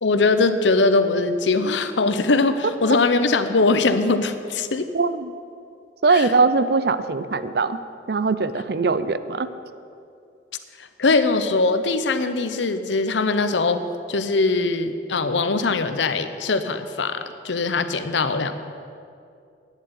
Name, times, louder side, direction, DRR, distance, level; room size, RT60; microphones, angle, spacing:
voice 1, 0.0-4.9 6.1-6.3 10.8-13.8 14.1-18.5, left 3 dB, 85° left, 10 dB, 0.8 m, -21 dB
voice 2, 4.9-5.3 6.0-7.8 8.1-9.5, right 4 dB, 60° right, 13 dB, 0.5 m, -21 dB
10.0 x 7.5 x 9.5 m, 2.5 s
head